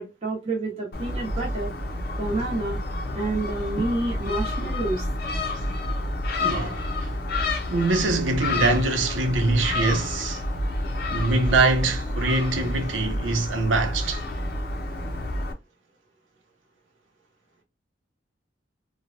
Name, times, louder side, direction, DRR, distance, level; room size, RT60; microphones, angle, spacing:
voice 1, 0.0-1.7 2.2-2.8 3.1-5.1, right 2 dB, 35° right, 0.9 m, -28 dB
Gull seagull, 0.9-15.5, left 1 dB, 55° left, 0.6 m, -29 dB
voice 2, 6.4-7.1 7.7-10.4 11.1-14.2, right 3 dB, 85° right, 0.6 m, -24 dB
3.0 x 2.2 x 2.5 m
head